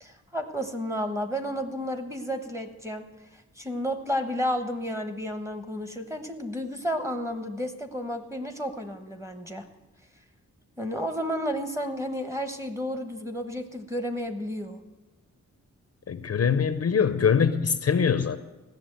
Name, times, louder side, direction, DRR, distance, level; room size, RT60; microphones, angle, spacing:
voice 1, 0.0-3.0 3.6-9.6 10.8-14.8, equal, 10° right, 7 dB, 1.0 m, -32 dB
voice 2, 16.1-18.4, left 6 dB, 55° left, 11 dB, 0.6 m, -23 dB
15.0 x 6.8 x 9.1 m, 1.1 s
wide cardioid pair, 145°, 30 cm